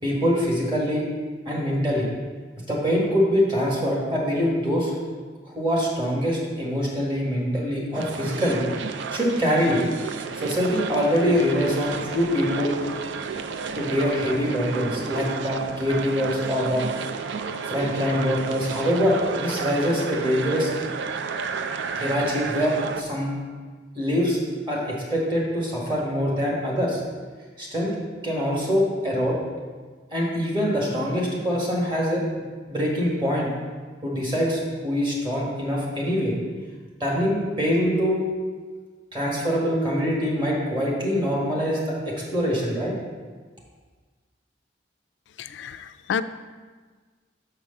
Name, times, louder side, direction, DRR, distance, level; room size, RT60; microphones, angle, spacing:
voice 1, 0.0-1.0 1.5-2.1 2.7-5.0 5.5-8.6 9.1-9.8 10.3-12.7 13.7-16.8 17.7-20.7 21.9-23.3 24.0-24.4 24.7-27.0 27.6-27.9 28.2-29.4 30.1-32.2 32.7-33.5 34.0-36.3 37.0-38.2 39.1-42.9, equal, 25° right, -4 dB, 1.8 m, -24 dB
sound 1, 7.9-23.0, right 5 dB, 75° right, 0.4 m, -32 dB
voice 2, 45.4-46.2, left 7 dB, 75° left, 12 dB, 0.3 m, -30 dB
6.7 x 4.8 x 5.4 m, 1.4 s
head